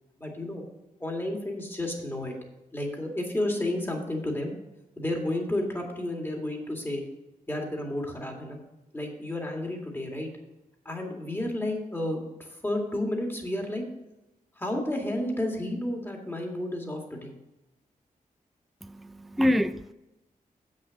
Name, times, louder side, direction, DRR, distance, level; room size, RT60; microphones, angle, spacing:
voice 1, 0.2-0.6 1.0-2.3 2.7-4.5 5.0-7.0 7.5-8.6 8.9-10.3 10.9-12.2 12.5-13.8 14.6-17.3, left 1 dB, 15° left, 2.1 m, -31 dB
voice 2, 18.8-19.9, left 1 dB, ahead, 0.3 m, -26 dB
7.8 x 6.5 x 6.4 m
wide cardioid pair, 105°, 15 cm